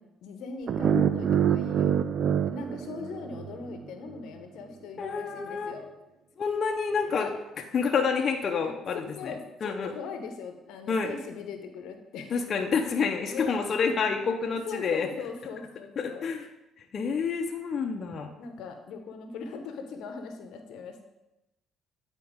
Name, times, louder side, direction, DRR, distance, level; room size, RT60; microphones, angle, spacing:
voice 1, 0.2-1.9 2.2-5.9 7.0-7.3 8.6-8.7 9.2-12.3 13.3-13.7 14.0-14.2 14.7-16.3 18.4-21.0, left 5 dB, 75° left, 6 dB, 0.8 m, -40 dB
sound 1, 0.7-3.7, right 8 dB, 60° right, 0.4 m, -26 dB
voice 2, 5.0-5.7 6.4-7.3 7.7-9.3 9.6-9.9 10.9-11.1 12.3-15.1 16.0-16.4 16.9-18.3, left 5 dB, 50° left, 3 dB, 0.7 m, -28 dB
9.3 x 4.4 x 3.6 m, 0.95 s
supercardioid pair, 80°, 0 cm